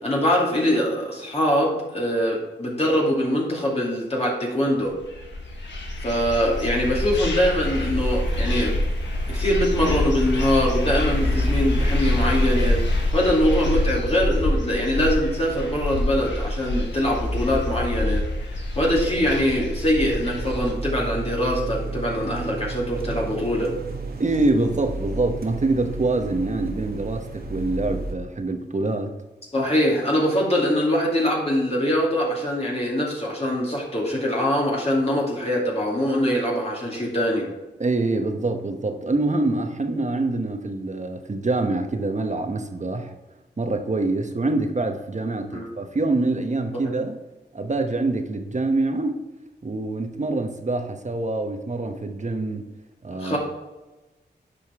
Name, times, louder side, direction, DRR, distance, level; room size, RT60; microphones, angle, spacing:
voice 1, 0.0-4.9 6.0-8.8 9.3-12.8 13.1-18.2 18.8-23.7 29.5-37.5 45.5-45.6 46.7-46.8 53.2-53.4, equal, 35° left, -4 dB, 2.4 m, -23 dB
sound 1, 5.0-20.7, left 1 dB, 90° left, 1.4 m, -25 dB
sound 2, 20.0-28.1, right 3 dB, 60° right, 1.4 m, -33 dB
voice 2, 24.2-29.1 37.8-43.1 43.6-47.1 47.5-49.2 49.6-52.7 53.0-53.4, right 2 dB, 40° right, 6 dB, 1.1 m, -25 dB
9.6 x 5.3 x 3.6 m, 1.1 s
cardioid pair, 55°, 18 cm